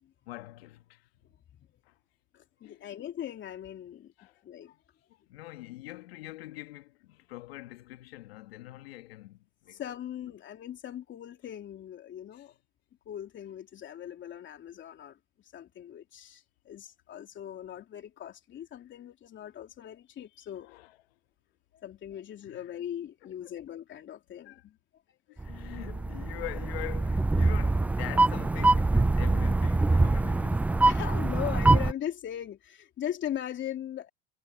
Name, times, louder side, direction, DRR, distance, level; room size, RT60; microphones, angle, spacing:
voice 1, 0.3-1.4 1.9-2.0 2.6-2.9 4.2-4.4 5.3-9.8 12.3-12.4 20.6-21.0 22.5-22.7 23.2-23.5 24.4-24.6 25.3-31.0, left 18 dB, 80° left, 1.9 m, -44 dB
voice 2, 2.3-4.1 4.4-4.8 9.7-12.5 13.0-20.7 21.7-24.8 25.1-25.4 30.8-34.1, left 11 dB, 40° left, 3.2 m, -40 dB
sound 1, 25.4-31.9, right 2 dB, 5° right, 0.3 m, -24 dB
hypercardioid pair, 100°, 30 cm